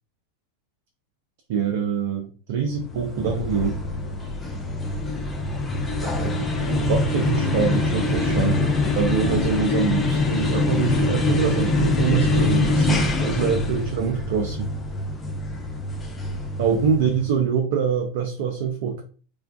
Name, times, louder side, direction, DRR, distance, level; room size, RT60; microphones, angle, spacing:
voice 1, 1.5-3.8 6.0-8.7 8.9-14.7 16.6-19.0, right 6 dB, 60° right, 2 dB, 0.4 m, -24 dB
sound 1, 2.8-17.3, left 2 dB, 20° left, 0.5 m, -24 dB
2.4 x 2.2 x 2.3 m, 0.39 s
hypercardioid pair, 95°, 0 cm